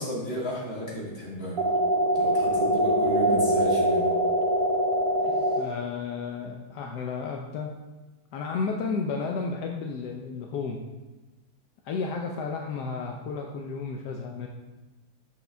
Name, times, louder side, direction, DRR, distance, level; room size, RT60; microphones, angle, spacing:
voice 1, 0.0-1.6 2.1-4.1 5.2-5.5, equal, 40° left, -5 dB, 2.0 m, -33 dB
sound 1, 1.6-5.6, right 1 dB, 40° right, 0.5 m, -23 dB
voice 2, 5.5-7.7 8.3-10.8 11.8-14.5, left 4 dB, 80° left, 1 dB, 1.2 m, -32 dB
7.2 x 6.2 x 3.4 m, 1.2 s
omnidirectional pair, 1.8 m